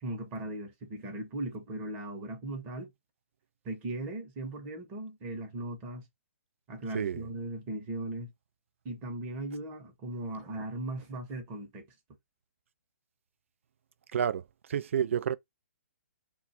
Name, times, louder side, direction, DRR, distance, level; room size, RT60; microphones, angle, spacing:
voice 1, 0.0-2.9 3.6-6.0 6.7-8.3 8.8-11.8, right 1 dB, 20° right, 0.8 m, -38 dB
voice 2, 14.1-14.4 14.7-15.4, right 8 dB, 60° right, 0.3 m, -29 dB
2.5 x 2.3 x 4.0 m
hypercardioid pair, 160°, 8 cm